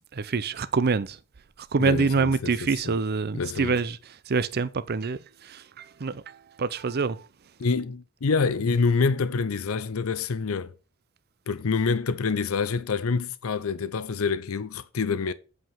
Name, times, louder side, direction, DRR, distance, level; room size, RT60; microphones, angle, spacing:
voice 1, 0.2-1.2 1.7-4.0 4.3-5.2 5.5-6.2 6.6-7.2, right 4 dB, 50° right, 0.6 m, -25 dB
voice 2, 1.8-3.0 3.3-3.8 7.6-10.7 11.5-15.3, left 4 dB, 85° left, 0.6 m, -27 dB
8.2 x 5.0 x 7.4 m
head